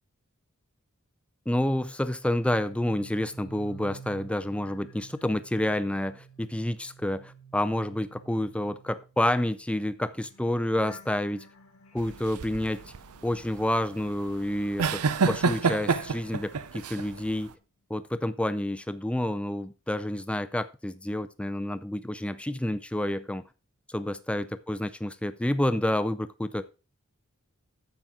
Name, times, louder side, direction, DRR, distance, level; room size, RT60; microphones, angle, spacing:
voice 1, 1.5-11.5 11.9-12.8 13.2-17.5 17.9-23.4 23.9-26.7, left 1 dB, 5° left, 0.4 m, -29 dB
sound 1, 2.3-14.6 14.9-17.0 17.3-17.6, right 4 dB, 80° left, 1.6 m, -52 dB
sound 2, 12.0-17.5, right 5 dB, 90° right, 0.7 m, -29 dB
9.2 x 7.3 x 3.7 m
head